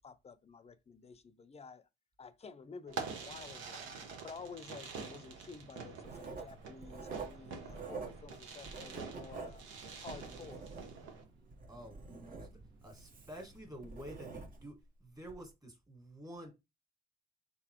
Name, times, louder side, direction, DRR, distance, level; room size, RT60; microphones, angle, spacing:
voice 1, 0.0-1.9 2.2-3.8 4.2-9.6 10.0-10.7, left 5 dB, 30° left, 0.5 m, -51 dB
Fireworks, 2.9-11.2, right 5 dB, 85° right, 1.1 m, -46 dB
sound 1, 5.3-14.7, right 3 dB, 65° right, 1.6 m, -62 dB
Writing, 6.0-8.4 8.6-11.1 11.5-14.8 15.2-15.4, right 4 dB, 45° right, 1.1 m, -47 dB
voice 2, 11.7-16.5, equal, 20° right, 1.8 m, -50 dB
3.9 x 3.9 x 3.0 m
cardioid pair, 90°, 20 cm